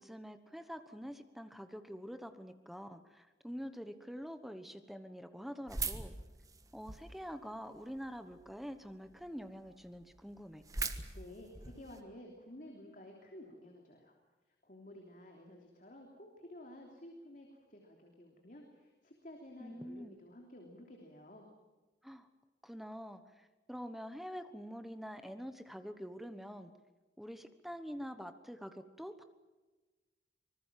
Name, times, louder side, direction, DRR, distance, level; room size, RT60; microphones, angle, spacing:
voice 1, 0.0-6.1 6.7-10.6 19.6-20.2 22.0-22.3 22.6-23.2 23.7-26.7 27.2-29.2, equal, ahead, 9 dB, 1.1 m, -46 dB
sound 1, 5.7-7.2 7.7-8.4 8.9-9.0 9.2-9.3 9.7-9.8 9.9-12.0, right 4 dB, 20° right, 1.4 m, -40 dB
voice 2, 11.1-14.1 14.6-21.5, left 1 dB, 50° left, 1 dB, 3.3 m, -53 dB
25.5 x 20.5 x 7.6 m, 1.2 s
head